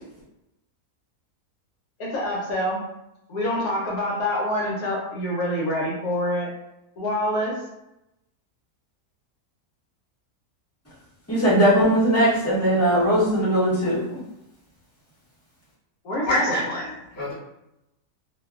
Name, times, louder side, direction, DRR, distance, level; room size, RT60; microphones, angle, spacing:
voice 1, 2.0-2.8 3.3-6.5 7.0-7.5 16.0-16.6, left 1 dB, 80° left, -4 dB, 1.1 m, -26 dB
voice 2, 11.3-14.0, equal, 15° left, -9 dB, 0.7 m, -19 dB
voice 3, 16.3-17.3, left 1 dB, 50° left, -6 dB, 0.9 m, -26 dB
2.7 x 2.2 x 2.3 m, 0.89 s
omnidirectional pair, 1.6 m